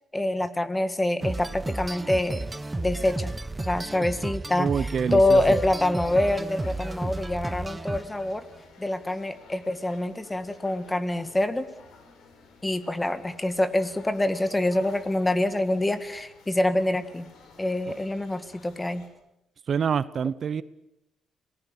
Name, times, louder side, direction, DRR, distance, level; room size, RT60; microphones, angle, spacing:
voice 1, 0.1-2.5 2.7-3.3 3.6-8.4 8.8-11.7 12.6-17.3 17.6-19.1, left 1 dB, 15° left, 12 dB, 1.9 m, -26 dB
sound 1, 1.2-8.4, right 2 dB, 15° right, 0.9 m, -33 dB
voice 2, 4.6-5.4 19.7-20.6, right 7 dB, 55° right, 17 dB, 0.8 m, -26 dB
sound 2, 5.6-19.1, left 4 dB, 75° left, 5.0 m, -52 dB
26.0 x 18.5 x 8.6 m, 0.88 s
cardioid pair, 90°, 0 cm